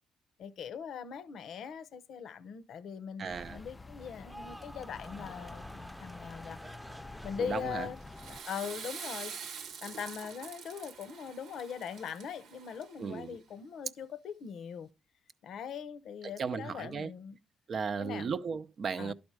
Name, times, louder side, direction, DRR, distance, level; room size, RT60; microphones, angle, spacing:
voice 1, 0.4-6.6 7.2-8.0 8.3-14.9 15.4-17.4 18.0-18.3 19.0-19.1, left 7 dB, 70° left, 0.7 m, -41 dB
voice 2, 3.2-3.6 7.4-7.9 13.0-13.4 16.4-17.1 17.7-19.1, right 5 dB, 50° right, 0.6 m, -35 dB
sound 1, 3.3-8.4, left 3 dB, 20° left, 0.3 m, -48 dB
sound 2, 4.1-10.4 10.7-11.2, equal, 10° right, 0.8 m, -52 dB
Water / Toilet flush, 8.0-13.2, right 6 dB, 80° right, 1.0 m, -45 dB
11.5 x 4.3 x 4.6 m
cardioid pair, 90°, 0 cm